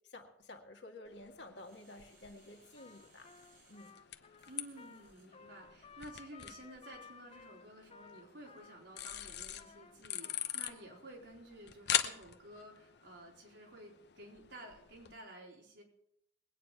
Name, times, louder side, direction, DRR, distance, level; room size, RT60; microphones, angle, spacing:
voice 1, 0.1-3.3 3.7-3.9, left 2 dB, 90° left, 4 dB, 1.9 m, -52 dB
sound 1, 1.0-15.1, left 10 dB, 70° left, 0.9 m, -43 dB
sound 2, 1.5-5.3 5.9-6.0, right 4 dB, 55° right, 4.1 m, -68 dB
Trumpet, 2.7-11.0, left 6 dB, 35° left, 0.5 m, -58 dB
voice 2, 4.5-15.8, right 1 dB, 80° right, -1 dB, 4.0 m, -53 dB
21.5 x 9.2 x 4.7 m, 0.75 s
head